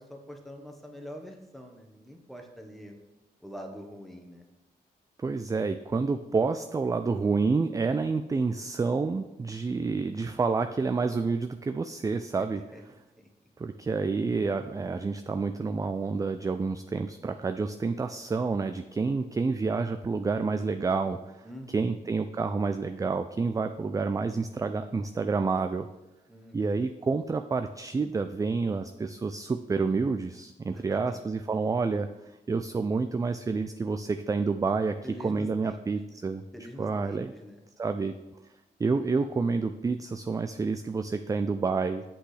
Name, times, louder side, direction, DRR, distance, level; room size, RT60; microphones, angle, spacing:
voice 1, 0.0-2.9 3.4-4.5 12.7-12.8 13.2-13.3 21.4-22.0 26.3-27.0 30.7-31.2 35.0-36.2 36.5-37.6, equal, ahead, 3 dB, 1.2 m, -45 dB
voice 2, 5.2-12.6 13.6-21.4 21.7-25.9 26.5-32.1 32.5-35.0 35.2-36.4 36.8-37.3 37.8-38.1 38.8-42.0, right 4 dB, 20° right, 9 dB, 0.3 m, -29 dB
7.9 x 6.0 x 3.3 m, 1.0 s
cardioid pair, 70°, 17 cm